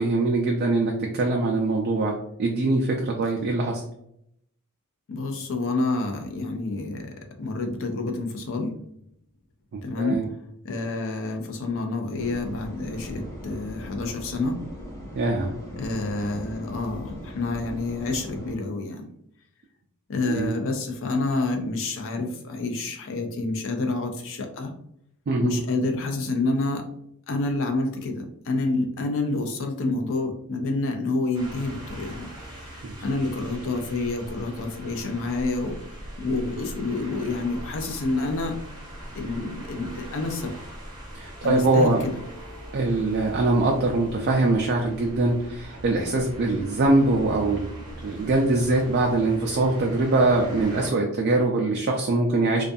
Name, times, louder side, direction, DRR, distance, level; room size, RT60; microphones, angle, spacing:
voice 1, 0.0-3.8 9.7-10.2 15.1-15.5 20.3-20.5 25.3-25.5 32.8-32.9 41.1-42.0 42.7-47.8 48.0-52.6, right 2 dB, 45° right, 0 dB, 0.3 m, -23 dB
voice 2, 5.1-8.8 9.8-10.2 10.6-14.6 15.8-19.1 20.1-24.7 25.4-26.8 27.3-35.8 36.2-38.6 39.2-40.5 41.4-42.2, left 2 dB, 60° left, 4 dB, 0.5 m, -28 dB
sound 1, 12.2-18.6, equal, 15° left, 0.8 m, -39 dB
sound 2, 31.3-50.9, equal, 20° right, 0.7 m, -40 dB
2.3 x 2.3 x 2.6 m, 0.73 s
head